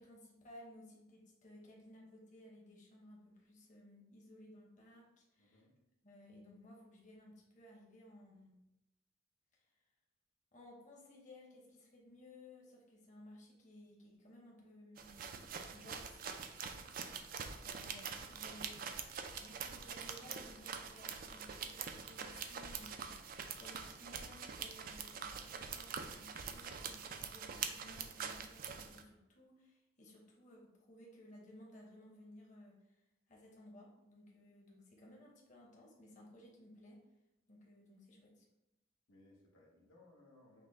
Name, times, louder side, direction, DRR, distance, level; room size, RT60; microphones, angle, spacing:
voice 1, 0.0-5.6 6.0-8.6 9.5-9.7 10.5-16.2 17.6-33.0 33.3-37.0 37.5-38.4, left 1 dB, 40° left, -2 dB, 0.9 m, -58 dB
voice 2, 5.4-5.7 16.6-16.9 39.1-40.6, left 2 dB, 80° left, -2 dB, 1.1 m, -64 dB
sound 1, 15.0-29.0, right 6 dB, 45° right, 0.3 m, -45 dB
5.9 x 2.1 x 3.4 m, 0.92 s
head